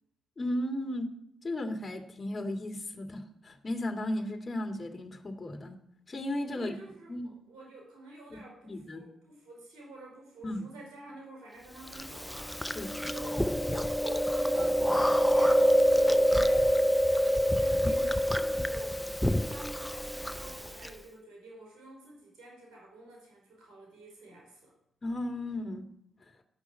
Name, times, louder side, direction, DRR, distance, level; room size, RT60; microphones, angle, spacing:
voice 1, 0.4-1.1 1.4-5.8 6.1-6.7 7.1-7.3 8.3-9.0 10.4-10.7 12.7-12.9 17.8-18.0 18.4-18.6 25.0-25.8 26.2-26.3, left 1 dB, 40° left, 4 dB, 2.2 m, -35 dB
voice 2, 6.5-12.8 13.1-19.0 19.3-24.7, right 1 dB, 75° right, -2 dB, 4.8 m, -49 dB
Chewing mastication, 11.9-20.9, equal, 5° left, 0.7 m, -26 dB
12.0 x 6.1 x 8.2 m, 0.74 s
hypercardioid pair, 40°, 0 cm